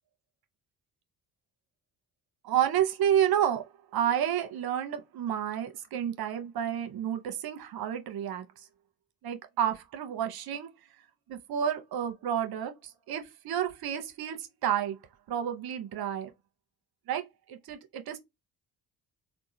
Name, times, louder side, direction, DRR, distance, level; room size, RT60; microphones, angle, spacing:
voice 1, 2.4-3.6 3.9-8.7 9.2-10.7 11.3-15.0 15.3-16.3 17.1-17.2 17.5-18.2, right 10 dB, 55° right, 0.9 m, -30 dB
3.7 x 2.2 x 2.8 m
hypercardioid pair, 45°, 43 cm